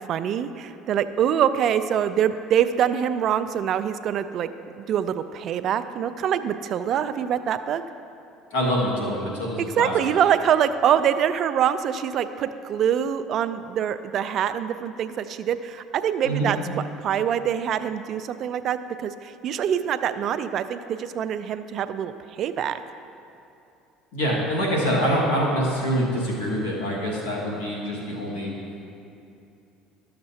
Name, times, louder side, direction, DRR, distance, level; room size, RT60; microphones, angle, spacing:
voice 1, 0.1-4.5 4.8-7.8 9.8-16.6 17.0-22.8, right 9 dB, 55° right, 11 dB, 0.3 m, -24 dB
voice 2, 8.5-9.9 16.2-16.5 24.1-28.5, equal, 85° left, -4 dB, 1.8 m, -25 dB
12.5 x 6.7 x 2.8 m, 2.6 s
hypercardioid pair, 80°, 0 cm